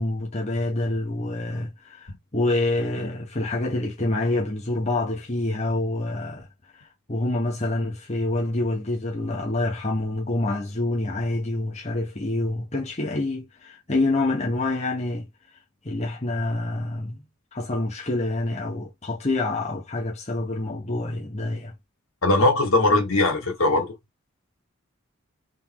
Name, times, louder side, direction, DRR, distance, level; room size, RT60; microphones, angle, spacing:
voice 1, 0.0-2.1 2.3-6.5 7.1-15.3 15.8-17.2 17.5-21.7, left 2 dB, 30° left, 1.0 m, -27 dB
voice 2, 22.2-23.9, left 2 dB, 80° left, 2.0 m, -20 dB
3.9 x 3.6 x 3.0 m
head